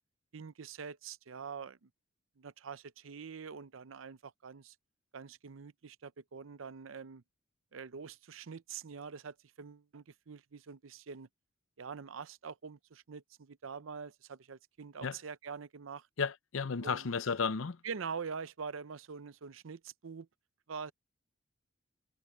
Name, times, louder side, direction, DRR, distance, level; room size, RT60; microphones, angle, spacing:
voice 1, 0.3-1.9 2.4-4.7 5.1-7.2 7.7-11.3 11.8-16.1 16.8-17.1 17.8-20.3 20.7-20.9, right 5 dB, 85° right, 0.6 m, -45 dB
voice 2, 16.2-17.8, left 5 dB, 85° left, 0.7 m, -33 dB
head